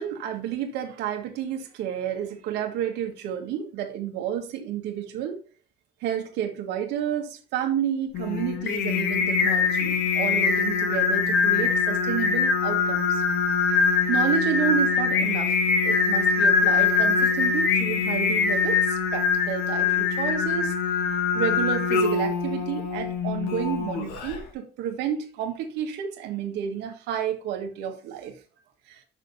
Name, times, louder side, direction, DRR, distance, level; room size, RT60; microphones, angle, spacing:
voice 1, 0.0-5.4 6.0-13.2 14.1-15.6 15.8-20.7 21.1-28.4 28.9-29.0, right 9 dB, 85° right, 5 dB, 1.8 m, -30 dB
Singing, 8.1-24.4, left 5 dB, 80° left, 2.3 m, -23 dB
6.3 x 6.3 x 5.5 m, 0.39 s
cardioid pair, 110°, 17 cm